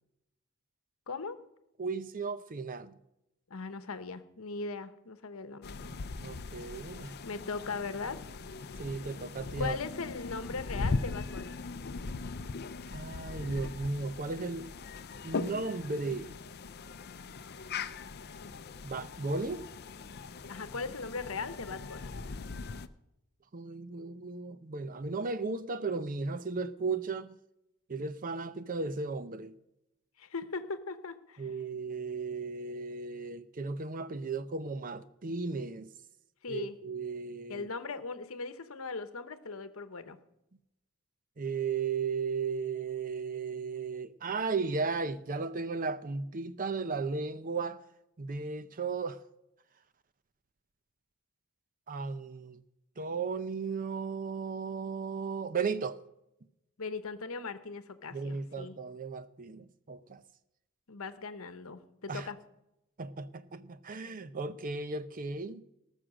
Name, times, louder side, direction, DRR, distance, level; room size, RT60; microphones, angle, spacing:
voice 1, 1.1-1.4 3.5-5.8 7.2-8.2 9.6-11.6 20.5-22.1 30.2-31.5 36.4-36.8 37.5-40.2 56.8-58.7 60.9-62.4, left 4 dB, 65° left, 1.0 m, -39 dB
voice 2, 1.8-2.9 5.9-7.2 8.8-9.8 12.9-14.7 15.2-16.3 18.8-19.6 23.5-27.4 27.9-29.5 31.4-35.9 36.5-37.7 41.4-47.8 48.2-49.2 51.9-52.6 53.0-56.0 58.1-60.2 62.1-62.3 63.0-65.6, right 4 dB, 40° right, 0.6 m, -35 dB
sound 1, 5.6-22.9, left 4 dB, 50° left, 0.5 m, -40 dB
19.0 x 6.3 x 6.3 m
head